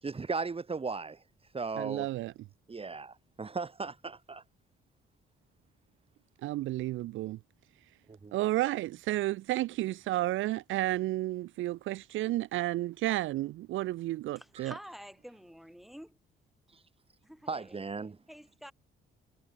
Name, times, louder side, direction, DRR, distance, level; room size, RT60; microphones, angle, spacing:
voice 1, 0.0-1.2 1.5-2.1 2.7-4.4 8.1-8.3 14.6-14.7 16.7-16.8 17.5-18.2, right 4 dB, 30° right, 2.7 m, -37 dB
voice 2, 1.8-2.3 6.4-7.4 8.3-14.7, right 16 dB, 80° right, 0.6 m, -32 dB
voice 3, 14.4-16.2 17.2-17.8 18.3-18.7, equal, ahead, 7.2 m, -48 dB
cardioid pair, 90°, 20 cm